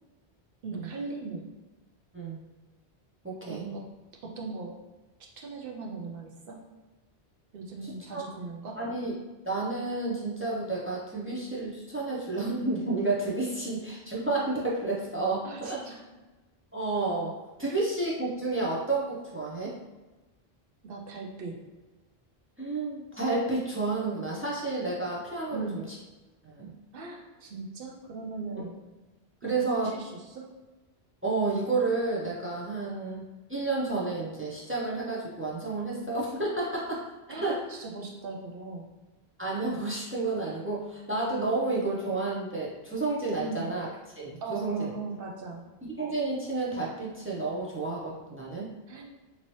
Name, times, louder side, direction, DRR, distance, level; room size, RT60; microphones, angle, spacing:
voice 1, 0.6-1.5 3.5-3.9 4.2-4.8 5.2-6.6 7.5-8.9 15.4-16.0 17.6-17.7 20.8-21.6 25.5-25.8 26.9-28.8 29.4-30.5 37.3-39.0 43.4-43.7 44.4-45.7 48.9-49.0, right 3 dB, 65° right, 0 dB, 0.8 m, -39 dB
voice 2, 3.2-3.6 7.8-8.2 8.8-9.1 9.4-15.8 16.7-19.8 22.6-25.8 26.4-26.7 29.4-29.9 31.2-37.0 37.4-37.6 39.4-43.9 44.2-44.9 45.8-48.7, right 3 dB, 20° right, -5 dB, 0.4 m, -31 dB
2.9 x 2.8 x 3.0 m, 1.2 s
omnidirectional pair, 1.1 m